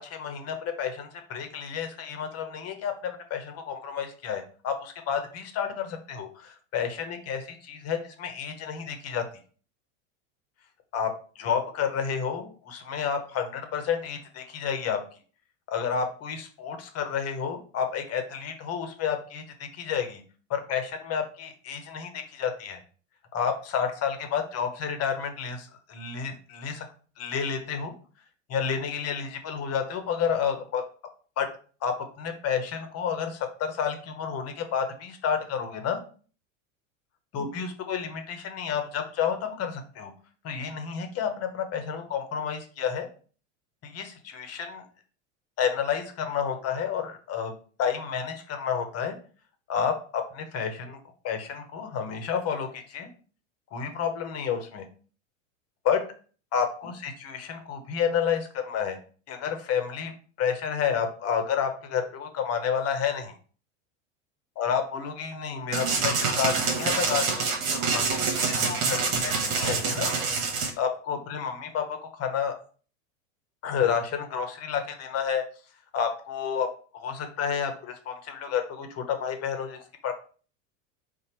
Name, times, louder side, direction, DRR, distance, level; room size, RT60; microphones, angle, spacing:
voice 1, 0.0-9.2 10.9-11.1 11.4-15.0 15.7-20.2 20.5-22.8 23.3-26.8 27.2-27.9 28.5-30.8 31.4-31.5 31.8-36.0 37.3-40.1 40.4-43.1 43.8-44.8 45.6-47.5 47.8-49.1 49.7-51.0 51.2-53.1 53.7-54.8 55.8-56.0 56.5-59.0 59.3-60.1 60.4-63.4 64.6-70.1 70.8-72.5 73.6-75.4 75.9-76.7 76.9-80.1, left 7 dB, 40° left, 6 dB, 1.0 m, -30 dB
sound 1, 65.7-70.7, right 4 dB, 75° right, 1.2 m, -26 dB
4.3 x 2.4 x 4.4 m, 0.40 s
hypercardioid pair, 105°, 39 cm